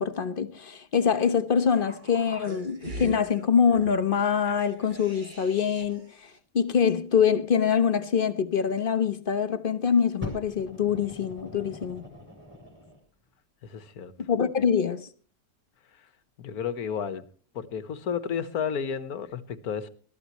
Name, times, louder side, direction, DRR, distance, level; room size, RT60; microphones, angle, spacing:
voice 1, 0.0-12.0 14.3-15.1, left 7 dB, 40° left, 1.1 m, -25 dB
sound 1, 1.7-6.1 6.4-6.5, right 1 dB, 30° right, 2.3 m, -41 dB
Fire, 10.2-13.0 13.8-13.9, left 2 dB, 5° right, 7.1 m, -41 dB
voice 2, 13.6-14.1 16.4-17.3 17.5-19.9, left 7 dB, 75° left, 1.7 m, -32 dB
21.5 x 13.5 x 3.0 m
omnidirectional pair, 1.6 m